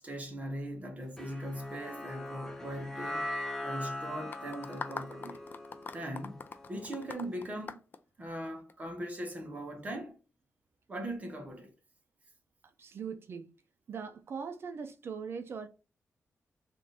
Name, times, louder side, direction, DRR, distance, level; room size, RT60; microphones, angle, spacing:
voice 1, 0.0-3.3 3.6-5.4 5.9-7.8 8.2-10.2 10.9-11.7, right 1 dB, 30° right, 1.0 m, -40 dB
sound 1, 1.2-7.5, left 1 dB, 5° left, 0.7 m, -41 dB
sound 2, 4.3-8.7, left 5 dB, 40° left, 0.4 m, -42 dB
voice 2, 12.6-13.5 13.9-15.7, right 6 dB, 50° right, 0.5 m, -40 dB
3.6 x 2.5 x 4.0 m
wide cardioid pair, 160°, 5 cm